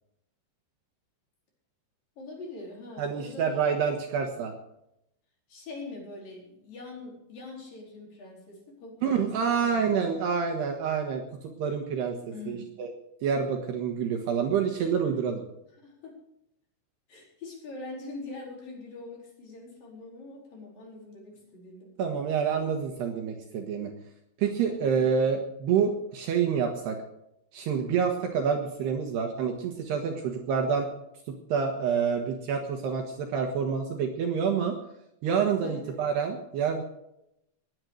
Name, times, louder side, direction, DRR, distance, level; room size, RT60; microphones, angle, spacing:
voice 1, 2.2-3.6 5.5-10.1 12.3-12.6 15.8-16.2 17.1-21.9 24.7-25.2 35.6-36.0, left 2 dB, 45° left, -2 dB, 5.9 m, -43 dB
voice 2, 3.0-4.5 9.0-12.2 12.5-12.9 13.2-15.4 22.0-23.9 24.4-27.0 27.5-30.9 31.3-34.8 35.2-36.8, right 6 dB, 65° right, 3 dB, 3.0 m, -27 dB
20.5 x 9.9 x 6.6 m, 0.82 s
omnidirectional pair, 5.8 m